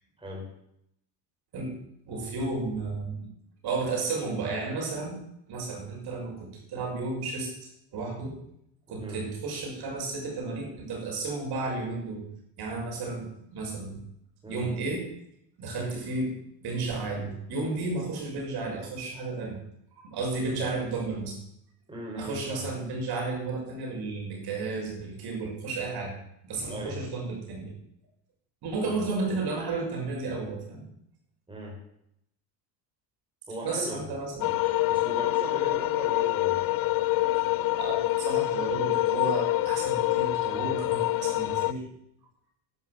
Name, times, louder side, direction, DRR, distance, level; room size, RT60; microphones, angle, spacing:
voice 1, 0.2-0.5 8.9-9.2 14.4-14.7 20.6-20.7 21.9-22.7 26.7-27.0 28.9-29.0 31.5-31.8 33.5-34.0 34.6-36.6, equal, 10° right, -1 dB, 5.1 m, -38 dB
voice 2, 2.1-3.3 3.6-5.2 5.5-8.4 8.9-12.2 12.6-14.0 14.5-15.1 15.6-19.6 20.0-21.4 22.2-26.1 26.4-27.7 28.6-30.9 33.6-34.5 37.8-41.8, right 3 dB, 50° right, 0 dB, 6.2 m, -33 dB
sound 1, 34.4-41.7, left 17 dB, 45° left, 0.6 m, -26 dB
12.0 x 11.5 x 8.1 m, 0.75 s
cardioid pair, 125°, 47 cm